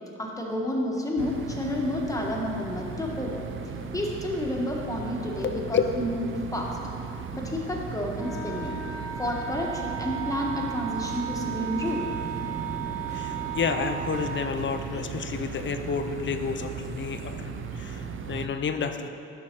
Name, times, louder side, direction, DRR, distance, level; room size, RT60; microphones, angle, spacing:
voice 1, 0.2-3.4 3.9-6.3 6.5-6.8 7.3-8.8 9.2-12.1, left 1 dB, 10° left, -1 dB, 1.1 m, -30 dB
sound 1, 1.2-18.5, right 6 dB, 45° right, 0.5 m, -37 dB
voice 2, 5.4-5.9 13.1-19.1, left 6 dB, 40° left, 7 dB, 0.5 m, -30 dB
Wind instrument woodwind instrument, 8.2-14.5, right 8 dB, 10° right, 1.3 m, -35 dB
sound 2, 10.2-18.0, right 1 dB, 25° right, 1.7 m, -44 dB
10.5 x 6.2 x 2.9 m, 2.8 s
cardioid pair, 90°, 30 cm